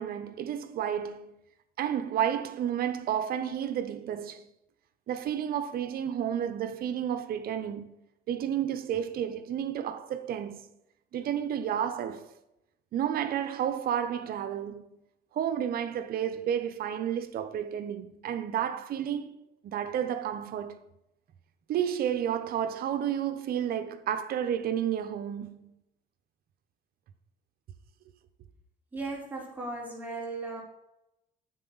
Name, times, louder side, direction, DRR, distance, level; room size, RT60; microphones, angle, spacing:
voice 1, 0.0-1.3 1.8-4.5 5.1-8.0 8.3-10.7 11.1-12.3 12.9-15.0 15.3-20.9 21.7-25.7, right 9 dB, 60° right, 1.0 m, -31 dB
voice 2, 28.9-30.6, right 3 dB, 10° right, 4.1 m, -36 dB
9.7 x 7.7 x 4.1 m
cardioid pair, 110°, 17 cm